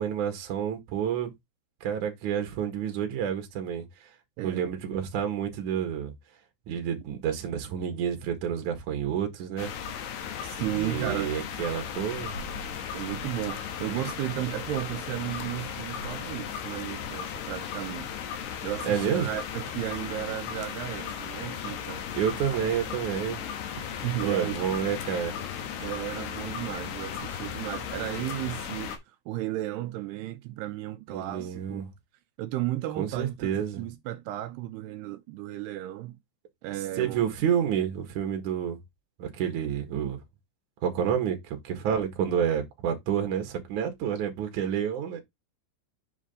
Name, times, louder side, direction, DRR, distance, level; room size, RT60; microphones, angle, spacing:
voice 1, 0.0-1.3 1.8-3.9 4.4-6.1 6.7-9.7 10.7-12.4 18.8-19.3 22.1-23.5 24.2-25.3 31.1-31.9 33.0-33.8 37.0-38.8 39.2-40.2 40.8-45.2, right 8 dB, 55° right, 2.7 m, -29 dB
voice 2, 4.4-4.7 10.4-11.3 12.9-18.1 18.6-22.0 22.9-23.0 23.8-24.6 25.8-31.8 32.4-33.5 33.8-36.2 36.6-37.2, right 15 dB, 85° right, 2.5 m, -34 dB
sound 1, 9.6-29.0, left 8 dB, 70° left, 3.0 m, -36 dB
7.9 x 5.0 x 3.8 m
omnidirectional pair, 5.1 m